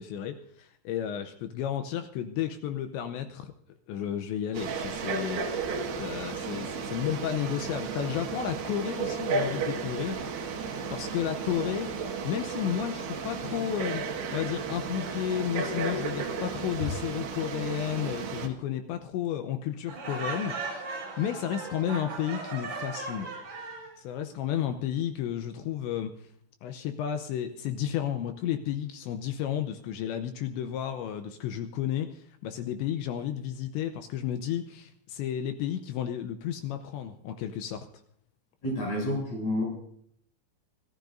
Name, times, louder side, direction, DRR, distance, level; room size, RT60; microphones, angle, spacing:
voice 1, 0.0-3.5 3.9-5.4 6.0-10.3 10.9-11.9 12.2-14.0 14.3-20.8 21.2-23.3 23.6-23.7 24.0-26.3 26.6-37.9, left 10 dB, 80° left, 7 dB, 2.8 m, -32 dB
Frog, 4.5-18.5, right 4 dB, 65° right, 3.4 m, -33 dB
Laughter, 19.9-23.9, right 3 dB, 45° right, 6.7 m, -37 dB
voice 2, 38.6-39.6, left 1 dB, 35° left, -1 dB, 8.0 m, -29 dB
26.0 x 15.0 x 2.6 m, 0.67 s
omnidirectional pair, 5.7 m